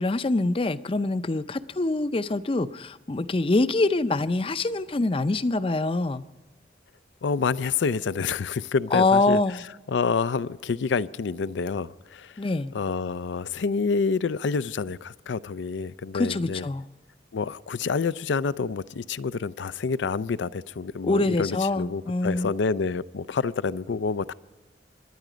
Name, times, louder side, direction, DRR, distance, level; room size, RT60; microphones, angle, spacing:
voice 1, 0.0-6.2 8.9-9.6 12.4-12.7 16.1-16.8 21.0-22.5, left 2 dB, 30° left, 14 dB, 0.5 m, -24 dB
voice 2, 7.2-9.4 9.9-12.4 12.7-16.7 17.3-24.3, left 5 dB, 85° left, 17 dB, 0.5 m, -28 dB
25.0 x 11.0 x 5.0 m, 1.2 s
head